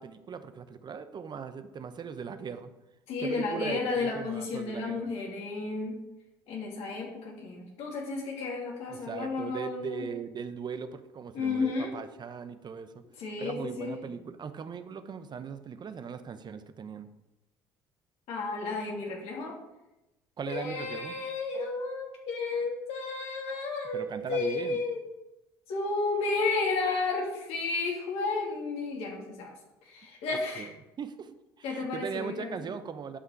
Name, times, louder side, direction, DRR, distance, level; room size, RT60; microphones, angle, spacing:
voice 1, 0.0-2.7 3.2-5.1 8.9-13.0 13.4-17.1 20.4-21.2 23.9-24.8 30.6-30.7 31.0-31.3 31.6-33.2, right 6 dB, 40° right, 10 dB, 0.9 m, -39 dB
voice 2, 3.1-5.9 6.5-10.0 11.3-11.9 13.2-13.9 18.3-19.6 20.5-25.0 25.7-29.5 29.8-30.7 31.6-32.5, left 3 dB, 65° left, -2 dB, 3.0 m, -32 dB
11.5 x 5.9 x 4.7 m, 0.95 s
hypercardioid pair, 65°, 11 cm